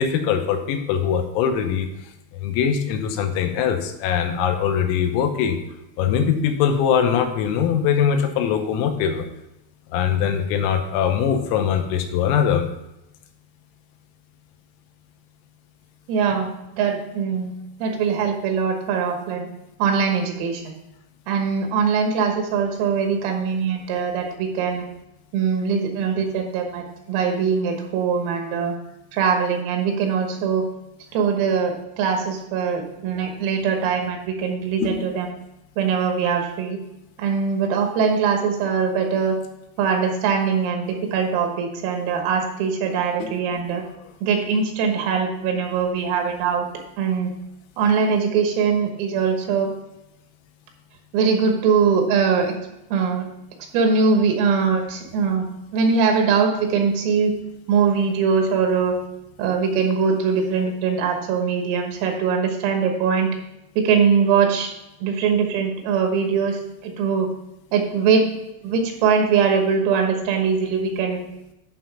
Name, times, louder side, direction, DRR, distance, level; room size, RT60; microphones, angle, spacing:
voice 1, 0.0-1.9 2.3-5.6 6.0-9.3 9.9-12.7 34.8-35.0 43.2-43.3, left 8 dB, 85° left, 6 dB, 3.6 m, -22 dB
voice 2, 16.1-16.5 16.8-17.5 17.8-19.5 19.8-20.8 21.3-24.9 25.3-28.8 29.1-30.6 31.1-35.3 35.8-36.8 37.2-39.4 39.8-43.8 44.2-46.7 47.0-47.3 47.8-49.7 51.1-52.5 52.9-53.3 53.7-55.5 55.7-57.3 57.7-59.0 59.4-63.3 63.8-64.7 65.0-67.3 67.7-68.3 68.6-71.2, right 6 dB, 85° right, 3 dB, 3.9 m, -21 dB
11.0 x 3.8 x 5.7 m, 0.90 s
omnidirectional pair, 5.9 m